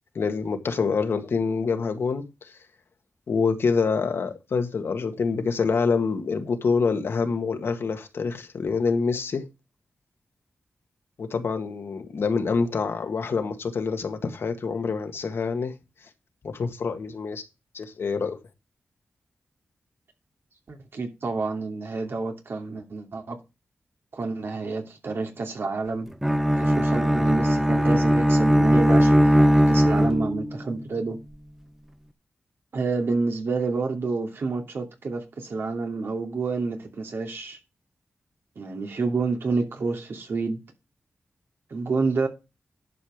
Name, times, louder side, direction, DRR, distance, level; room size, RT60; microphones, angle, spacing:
voice 1, 0.2-2.5 3.3-9.4 11.2-15.7 16.4-17.4 17.7-18.4, left 5 dB, 75° left, 1.7 m, -26 dB
voice 2, 20.7-23.4 24.1-26.1 26.6-31.2 32.7-37.6 38.6-40.6 41.7-42.3, right 3 dB, 70° right, 2.7 m, -29 dB
Bowed string instrument, 26.2-30.6, equal, 10° right, 1.0 m, -19 dB
11.0 x 5.5 x 5.0 m
cardioid pair, 60°, 4 cm